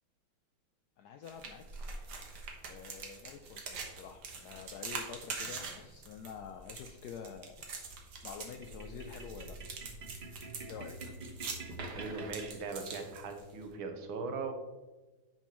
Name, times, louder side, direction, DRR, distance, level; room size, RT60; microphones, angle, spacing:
voice 1, 1.0-1.9 2.7-7.7 8.2-9.6 10.7-11.2, left 7 dB, 80° left, 5 dB, 0.8 m, -48 dB
sound 1, 1.2-13.7, right 4 dB, 60° right, 1.6 m, -44 dB
sound 2, 8.6-13.1, right 3 dB, 35° right, 0.9 m, -47 dB
voice 2, 11.9-14.5, right 4 dB, 90° right, 5 dB, 1.7 m, -39 dB
8.8 x 5.5 x 3.0 m, 1.2 s
omnidirectional pair, 2.2 m